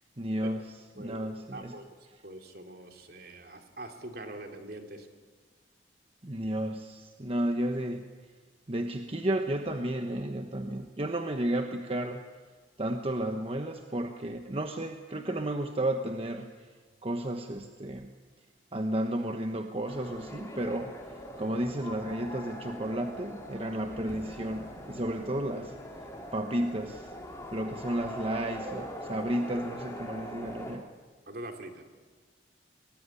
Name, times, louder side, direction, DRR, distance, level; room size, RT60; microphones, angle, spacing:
voice 1, 0.2-1.8 6.2-8.1 8.7-12.2 12.8-16.5 17.0-18.1 18.7-20.9 21.4-25.7 26.3-27.1 27.5-30.8, right 1 dB, 30° right, 5 dB, 1.2 m, -32 dB
voice 2, 1.5-1.8 2.2-5.1 21.4-21.6 31.3-31.8, right 1 dB, 55° right, 4 dB, 2.9 m, -43 dB
sound 1, 19.9-30.8, equal, 15° left, 3.1 m, -42 dB
23.0 x 19.5 x 9.9 m, 1.5 s
head